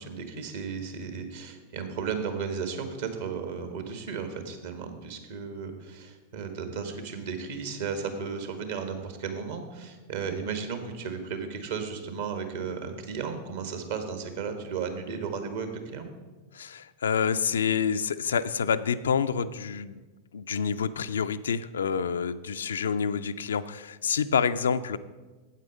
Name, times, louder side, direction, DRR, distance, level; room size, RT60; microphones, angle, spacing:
voice 1, 0.0-16.1, right 6 dB, 55° right, 7 dB, 1.3 m, -34 dB
voice 2, 16.5-20.0 20.3-25.0, left 6 dB, 65° left, 12 dB, 0.3 m, -28 dB
8.3 x 8.2 x 5.1 m, 1.3 s
figure-of-eight pair, 90°, 0 cm